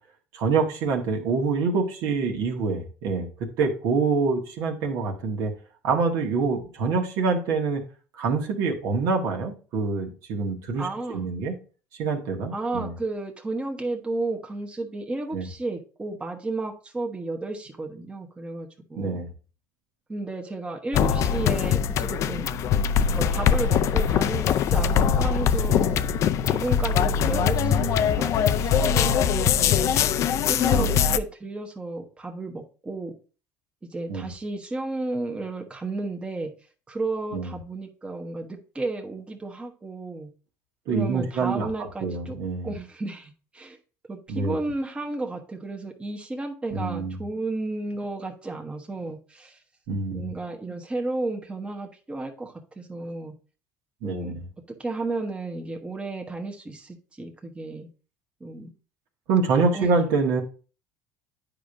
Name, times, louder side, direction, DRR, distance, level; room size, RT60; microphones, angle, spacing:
voice 1, 0.3-5.5 5.8-7.8 8.2-11.5 12.0-12.9 15.3-15.5 19.0-19.3 27.3-28.0 30.7-31.0 34.1-34.3 37.3-37.5 40.9-41.7 42.0-42.7 44.3-44.6 46.7-47.2 49.9-50.3 54.0-54.4 59.3-60.4, right 4 dB, 70° right, 1.6 m, -26 dB
voice 2, 10.8-11.3 12.5-19.2 20.1-22.5 23.0-26.0 26.4-30.0 30.5-33.1 33.8-36.5 36.9-40.3 40.9-42.4 42.6-43.8 44.1-49.6 50.1-53.3 54.0-54.3 54.8-57.9 58.4-58.7 59.6-60.1, right 2 dB, 15° right, 1.1 m, -33 dB
sound 1, 20.9-31.2, left 8 dB, 55° left, 0.4 m, -22 dB
9.2 x 5.1 x 2.6 m
supercardioid pair, 90°, 6 cm